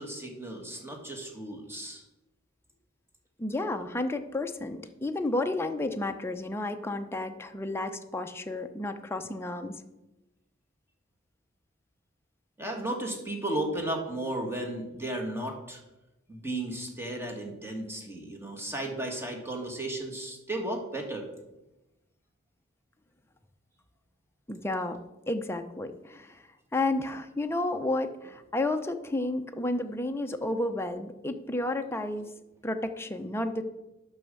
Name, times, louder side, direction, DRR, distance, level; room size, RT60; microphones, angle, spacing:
voice 1, 0.0-2.0 12.6-15.8 16.3-21.3, right 1 dB, 10° right, 2 dB, 1.7 m, -34 dB
voice 2, 3.4-9.8 24.5-25.0 25.3-26.4 26.7-32.3 32.6-33.6, left 2 dB, 10° left, 6 dB, 0.6 m, -31 dB
9.1 x 6.3 x 6.8 m, 0.99 s
head